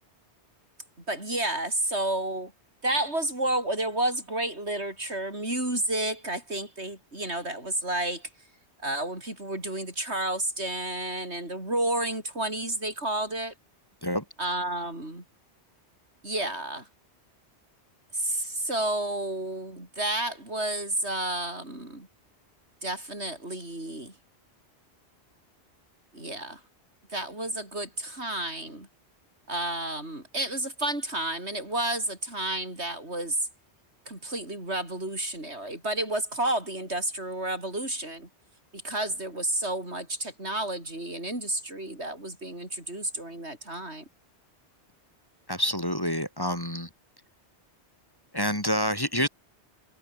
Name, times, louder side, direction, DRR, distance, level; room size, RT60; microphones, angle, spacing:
voice 1, 1.1-2.5 2.8-8.3 8.8-13.5 14.4-15.2 16.2-16.9 18.1-22.1 22.8-24.1 26.1-26.6 27.1-28.9 29.5-33.5 34.1-38.3 38.7-44.1, right 1 dB, 75° right, 7.4 m, -31 dB
voice 2, 45.5-46.9 48.3-49.3, equal, 20° left, 4.1 m, -27 dB
omnidirectional pair, 1.1 m